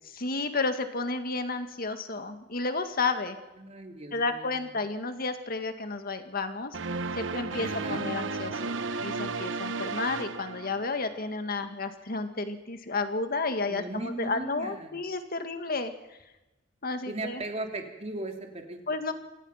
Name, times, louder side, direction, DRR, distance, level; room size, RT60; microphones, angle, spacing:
voice 1, 0.2-3.4 4.1-6.8 7.2-8.7 9.0-15.9 16.8-17.4 18.9-19.1, left 3 dB, 50° left, 8 dB, 2.0 m, -32 dB
voice 2, 3.6-4.7 7.6-8.1 13.7-15.0 17.1-18.8, right 2 dB, 35° right, 3 dB, 3.1 m, -37 dB
sound 1, 6.7-11.2, right 4 dB, 75° right, 1.0 m, -34 dB
27.0 x 19.0 x 5.8 m, 1.0 s
head